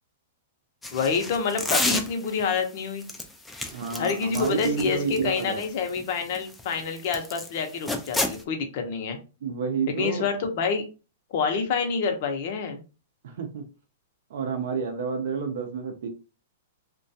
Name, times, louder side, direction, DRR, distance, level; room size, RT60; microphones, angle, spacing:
sound 1, 0.8-2.4 3.0-7.5 7.8-8.4, left 2 dB, 5° left, 0.3 m, -30 dB
voice 1, 0.9-3.0 3.9-9.2 9.9-10.8 11.3-12.8, left 5 dB, 50° left, 5 dB, 0.6 m, -27 dB
voice 2, 3.7-5.6 9.4-10.3 13.2-13.6 14.3-16.1, right 5 dB, 65° right, 4 dB, 0.5 m, -29 dB
2.3 x 2.2 x 2.6 m, 0.33 s
hypercardioid pair, 155°, 0 cm